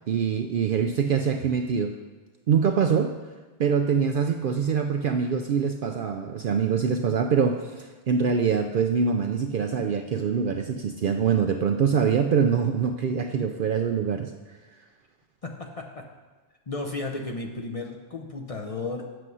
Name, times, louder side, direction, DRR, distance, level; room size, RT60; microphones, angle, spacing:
voice 1, 0.1-1.9 2.5-3.1 3.6-14.3, right 6 dB, 60° right, 5 dB, 0.6 m, -24 dB
voice 2, 15.4-16.1 16.7-19.1, left 3 dB, 35° left, 1 dB, 0.7 m, -34 dB
7.9 x 6.8 x 6.2 m, 1.3 s
omnidirectional pair, 1.2 m